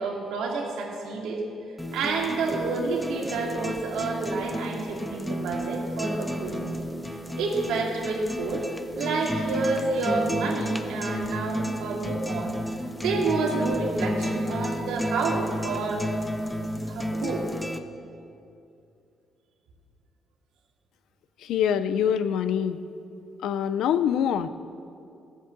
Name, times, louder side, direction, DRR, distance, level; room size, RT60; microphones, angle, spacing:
voice 1, 0.0-1.4 1.9-6.7 7.4-8.6 9.0-12.5 12.9-16.0 16.9-17.5, right 3 dB, 90° right, -1 dB, 2.3 m, -29 dB
sound 1, 1.8-17.8, equal, 10° left, 0.8 m, -32 dB
voice 2, 21.4-22.8 23.4-24.5, left 8 dB, 80° left, 13 dB, 0.5 m, -24 dB
16.0 x 7.4 x 7.3 m, 2.6 s
cardioid pair, 90°, 0 cm